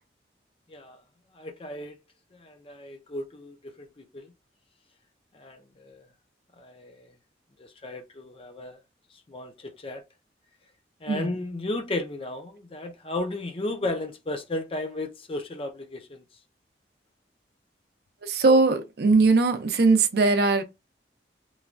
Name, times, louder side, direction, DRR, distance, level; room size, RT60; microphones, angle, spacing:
voice 1, 0.7-1.0 1.3-2.0 2.3-4.3 5.3-6.1 6.6-7.1 7.6-8.8 9.3-10.1 11.0-16.2, left 2 dB, 30° left, 0.5 m, -34 dB
voice 2, 18.2-20.6, right 3 dB, 60° right, 0.5 m, -20 dB
3.1 x 2.2 x 2.5 m
head